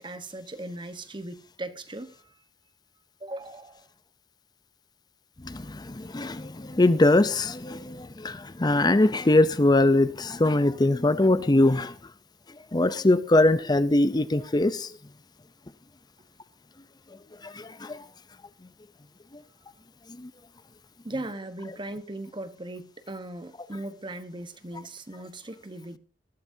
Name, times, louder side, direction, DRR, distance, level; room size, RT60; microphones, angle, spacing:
voice 1, 0.0-2.3 3.2-3.9 21.0-26.0, right 1 dB, 25° right, 1.2 m, -38 dB
voice 2, 5.4-11.9 12.7-14.9 17.4-18.0 20.2-20.3, left 2 dB, 25° left, 0.6 m, -22 dB
20.5 x 12.5 x 2.8 m
head